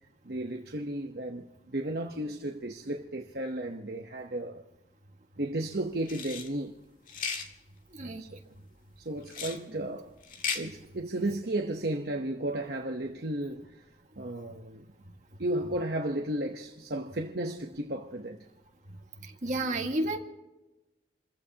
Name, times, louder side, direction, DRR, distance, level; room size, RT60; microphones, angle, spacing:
voice 1, 0.2-4.6 5.4-6.8 8.2-8.5 9.0-10.2 10.5-13.9 14.2-14.9 15.4-18.4, right 1 dB, 60° right, 1.0 m, -34 dB
sound 1, 6.0-6.5 7.1-7.5 9.3-9.6 10.2-10.6, left 6 dB, 50° left, 1.8 m, -35 dB
voice 2, 7.9-8.2 19.2-20.2, right 1 dB, 45° right, 1.8 m, -31 dB
28.5 x 15.5 x 2.9 m
head